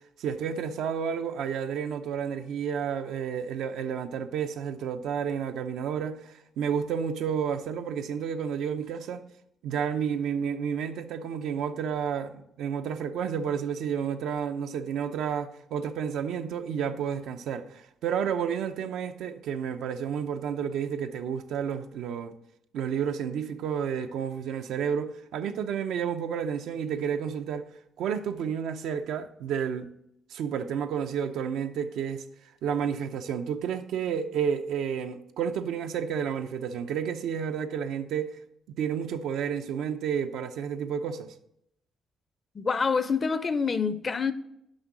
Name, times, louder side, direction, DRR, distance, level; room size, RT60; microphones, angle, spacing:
voice 1, 0.2-9.2 9.6-22.3 22.7-27.7 28.0-29.9 30.3-32.2 32.6-38.4 38.8-41.3, right 7 dB, 80° right, 0.6 m, -31 dB
voice 2, 42.5-44.3, left 5 dB, 35° left, 0.5 m, -26 dB
6.4 x 5.4 x 5.9 m
cardioid pair, 90°, 0 cm